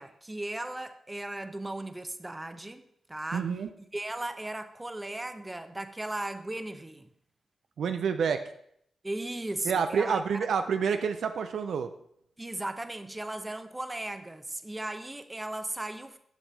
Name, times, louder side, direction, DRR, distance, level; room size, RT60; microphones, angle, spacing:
voice 1, 0.0-3.5 3.9-7.1 9.0-10.4 12.4-16.2, right 1 dB, 20° right, 0.8 m, -37 dB
voice 2, 3.3-3.7 7.8-8.4 9.6-11.9, right 6 dB, 75° right, 0.4 m, -28 dB
8.0 x 5.9 x 4.0 m
supercardioid pair, 40°, 0 cm